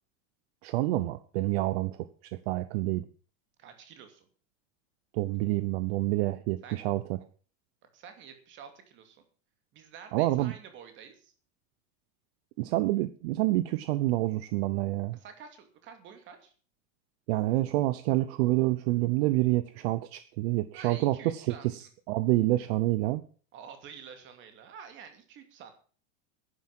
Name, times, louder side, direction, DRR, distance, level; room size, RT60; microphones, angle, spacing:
voice 1, 0.6-3.0 5.1-7.0 10.1-10.5 12.6-15.2 17.3-23.2, right 17 dB, 55° right, 14 dB, 0.8 m, -28 dB
voice 2, 3.6-4.3 6.6-6.8 7.9-9.2 9.7-11.3 15.1-16.5 20.7-21.9 23.5-25.7, right 7 dB, 30° right, 7 dB, 2.6 m, -49 dB
11.0 x 9.8 x 7.6 m, 0.42 s
supercardioid pair, 170°, 37 cm